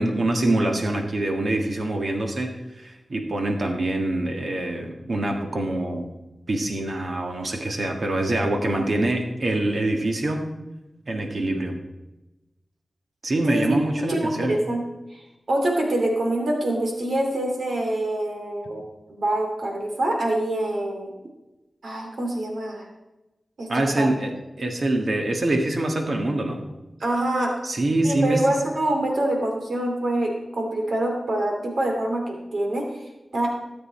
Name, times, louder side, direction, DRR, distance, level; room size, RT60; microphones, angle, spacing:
voice 1, 0.0-6.1 6.5-10.5 11.1-11.8 13.2-14.5 23.7-24.3 24.6-26.7 27.6-28.5, right 1 dB, 65° right, 3 dB, 1.6 m, -25 dB
voice 2, 14.1-14.8 15.1-18.8 19.2-21.1 21.8-22.8 23.6-23.7 24.0-24.1 27.0-27.5 28.0-33.0 33.3-33.5, right 1 dB, 80° right, 1 dB, 2.5 m, -25 dB
16.5 x 8.0 x 4.3 m, 1.0 s
cardioid pair, 55°, 0 cm